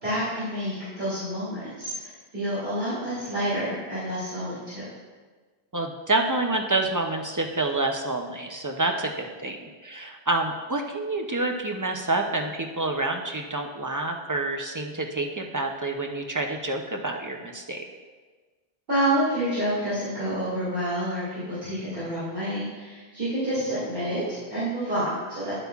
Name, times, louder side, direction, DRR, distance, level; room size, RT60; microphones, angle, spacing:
voice 1, 0.0-4.9 18.9-25.6, right 1 dB, 60° right, -12 dB, 2.6 m, -28 dB
voice 2, 5.7-9.6 9.8-17.8, right 2 dB, 35° right, 2 dB, 0.3 m, -28 dB
9.8 x 8.0 x 2.3 m, 1.4 s
omnidirectional pair, 1.1 m